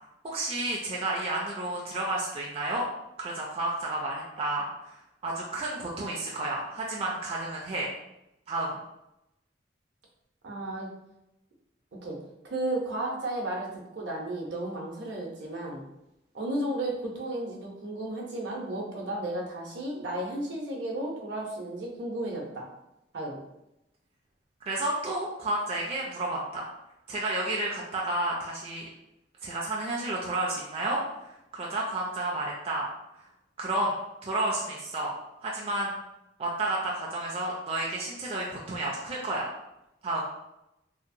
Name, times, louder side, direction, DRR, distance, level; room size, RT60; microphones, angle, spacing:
voice 1, 0.2-2.9 3.2-5.0 5.2-7.9 8.5-8.8 24.7-26.6 27.1-28.9 29.4-32.9 33.6-33.9 34.2-35.1 35.4-36.0 36.4-39.5 40.0-40.2, right 2 dB, 30° right, -3 dB, 0.4 m, -31 dB
voice 2, 10.4-10.9 12.0-12.2 12.5-15.8 16.3-22.7 23.1-23.4, right 1 dB, 70° right, -1 dB, 0.7 m, -33 dB
2.8 x 2.1 x 2.5 m, 0.88 s
head